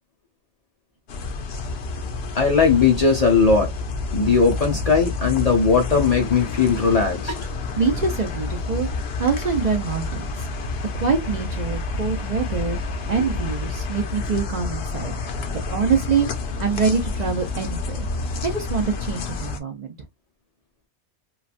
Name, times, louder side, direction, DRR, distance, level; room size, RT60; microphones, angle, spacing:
sound 1, 1.1-19.6, left 3 dB, 70° left, 0.8 m, -29 dB
voice 1, 2.4-3.7 4.1-7.4, left 5 dB, 45° left, 0.5 m, -18 dB
voice 2, 7.8-8.9 9.2-10.5 10.9-12.8 13.1-15.1 15.7-16.3 16.6-18.1 18.4-19.9, right 5 dB, 50° right, 0.6 m, -24 dB
3.1 x 2.2 x 2.5 m
omnidirectional pair, 1.1 m